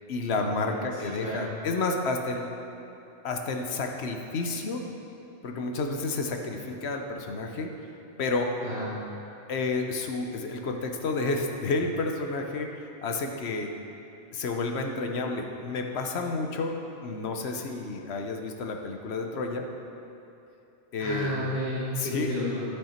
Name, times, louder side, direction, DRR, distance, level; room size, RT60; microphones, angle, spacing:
voice 1, 0.1-2.5 3.2-4.8 5.4-7.7 8.2-8.5 9.5-13.7 14.3-19.7 20.9-21.4 22.0-22.3, left 3 dB, 65° left, 3 dB, 1.0 m, -30 dB
voice 2, 1.0-1.5 8.6-8.9 21.0-22.6, left 1 dB, 40° left, -9 dB, 1.6 m, -32 dB
12.0 x 5.6 x 4.4 m, 2.8 s
omnidirectional pair, 1.2 m